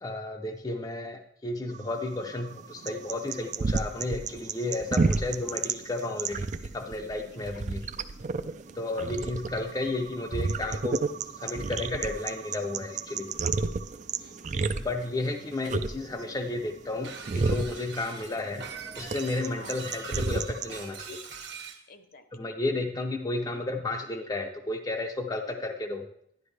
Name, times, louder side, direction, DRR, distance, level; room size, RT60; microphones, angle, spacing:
voice 1, 0.0-7.8 8.8-11.0 11.3-13.3 14.7-18.7 19.0-21.2 22.3-26.1, left 2 dB, 20° left, 3 dB, 0.6 m, -33 dB
sound 1, 1.7-20.8, right 4 dB, 45° right, 0.4 m, -32 dB
voice 2, 7.3-7.9 8.5-9.0 14.2-14.8 19.6-19.8 21.9-22.9 25.5-25.6, left 3 dB, 55° left, 8 dB, 0.9 m, -54 dB
Shatter, 17.0-21.8, right 5 dB, 70° right, 1.5 m, -42 dB
11.5 x 10.5 x 3.3 m, 0.73 s
head